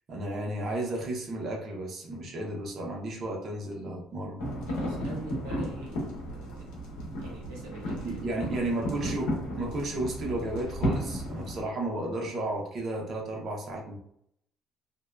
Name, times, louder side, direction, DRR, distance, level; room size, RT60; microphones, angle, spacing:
voice 1, 0.1-4.4 8.0-9.3 9.6-14.0, right 1 dB, 55° right, -1 dB, 0.8 m, -33 dB
sound 1, 4.4-11.6, equal, 85° left, 0.7 m, -34 dB
voice 2, 4.7-6.7 7.2-9.2, right 3 dB, 90° right, -2 dB, 0.8 m, -45 dB
2.7 x 2.2 x 2.2 m, 0.71 s
supercardioid pair, 70°, 0 cm